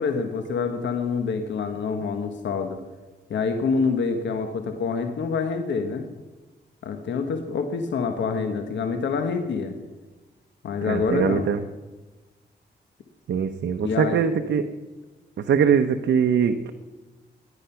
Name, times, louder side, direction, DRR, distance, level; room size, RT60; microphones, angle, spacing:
voice 1, 0.0-2.8 3.3-6.1 6.8-9.8 10.6-11.5 13.8-14.2, left 5 dB, 85° left, 6 dB, 1.4 m, -26 dB
voice 2, 10.8-11.6 13.3-14.7 15.4-16.7, right 7 dB, 80° right, 6 dB, 0.9 m, -22 dB
18.0 x 10.5 x 5.8 m, 1.2 s
cardioid pair, 70°, 19 cm